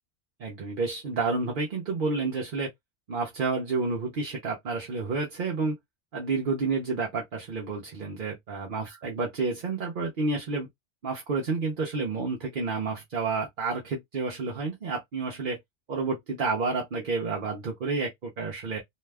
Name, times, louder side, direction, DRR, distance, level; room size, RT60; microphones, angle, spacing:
voice 1, 0.4-2.7 3.1-5.8 6.1-10.7 11.0-15.6 15.9-18.8, right 4 dB, 50° right, 0.7 m, -30 dB
2.6 x 2.2 x 3.3 m
omnidirectional pair, 1.2 m